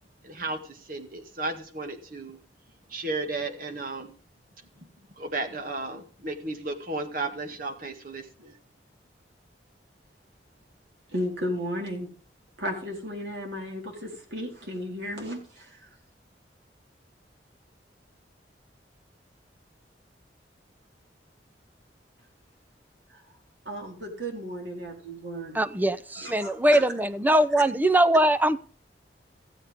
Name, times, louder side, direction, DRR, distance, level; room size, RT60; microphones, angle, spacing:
voice 1, 0.2-2.4 2.9-4.1 4.8-4.9 5.2-8.5, right 2 dB, 55° right, 6 dB, 1.8 m, -34 dB
voice 2, 11.1-12.1 12.6-15.9 23.1-23.2 23.6-25.6 26.2-26.8, equal, 85° right, 0 dB, 4.2 m, -34 dB
voice 3, 25.5-28.6, right 1 dB, 10° right, 13 dB, 0.6 m, -21 dB
15.5 x 8.3 x 3.6 m, 0.42 s
head